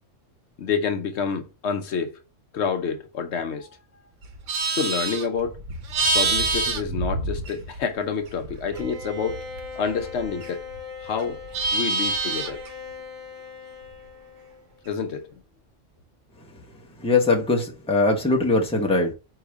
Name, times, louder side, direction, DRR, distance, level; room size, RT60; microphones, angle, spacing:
voice 1, 0.6-2.2 2.5-3.8 4.7-5.6 6.1-9.4 9.8-10.6 11.0-11.4 11.7-12.6 14.9-15.3, left 6 dB, 70° left, 0.9 m, -28 dB
Livestock farm animals working animals, 4.2-7.9 8.2-10.8 11.1-12.7, right 3 dB, 85° right, 1.2 m, -27 dB
Bowed string instrument, 8.7-14.8, left 4 dB, 45° right, 3.2 m, -40 dB
voice 2, 17.0-19.1, left 3 dB, 5° left, 0.9 m, -21 dB
4.8 x 2.8 x 3.4 m
omnidirectional pair, 1.3 m